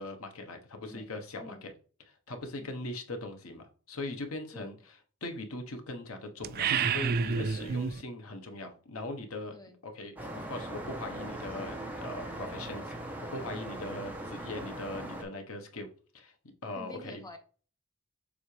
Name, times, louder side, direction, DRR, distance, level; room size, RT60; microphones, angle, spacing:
voice 1, 0.0-1.7 2.3-4.7 5.2-9.6 9.8-15.9 16.1-16.3 16.6-17.2, left 2 dB, 70° left, 1.2 m, -40 dB
voice 2, 0.8-1.7 2.6-2.8 4.5-4.8 9.5-9.8 16.7-17.4, left 1 dB, 20° left, 0.7 m, -48 dB
sound 1, 6.4-8.0, right 6 dB, 45° right, 0.3 m, -29 dB
sound 2, 10.2-15.2, right 1 dB, 10° right, 1.1 m, -40 dB
7.1 x 4.1 x 3.3 m
head